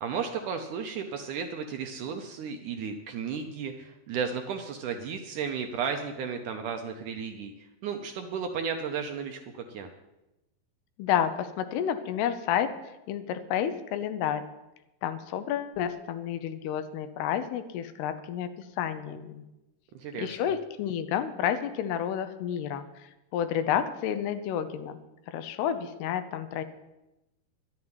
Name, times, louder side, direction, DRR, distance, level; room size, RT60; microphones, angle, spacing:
voice 1, 0.0-9.9 19.9-20.5, right 6 dB, 75° right, 5 dB, 1.9 m, -34 dB
voice 2, 11.0-12.7 13.1-14.4 15.0-18.5 18.8-19.4 20.2-25.0 25.3-26.6, left 9 dB, 90° left, 9 dB, 2.9 m, -30 dB
12.0 x 7.3 x 9.6 m, 0.98 s
omnidirectional pair, 4.5 m